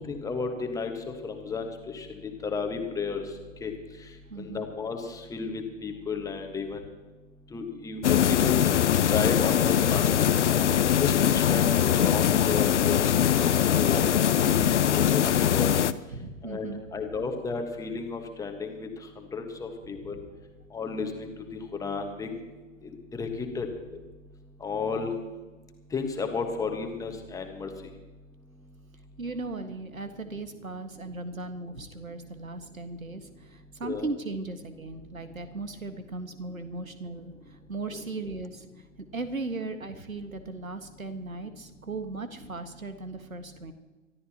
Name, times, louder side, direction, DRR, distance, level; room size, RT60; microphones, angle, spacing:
voice 1, 0.1-3.2 3.6-3.7 4.4-6.8 7.5-8.7 9.1-10.3 11.0-13.0 13.3-13.5 13.7-15.7 16.4-18.9 19.2-20.2 20.7-22.4 22.8-23.7 24.6-25.1 25.9-27.7 33.8-34.0 37.9-38.0, left 4 dB, 10° left, 4 dB, 1.4 m, -33 dB
voice 2, 4.3-4.7 16.1-16.8 20.0-20.2 29.2-38.6 39.1-43.7, right 3 dB, 85° right, 8 dB, 1.7 m, -37 dB
sound 1, 8.0-15.9, left 9 dB, 60° left, 0.7 m, -22 dB
25.0 x 13.0 x 3.0 m, 1.2 s
figure-of-eight pair, 125°, 40 cm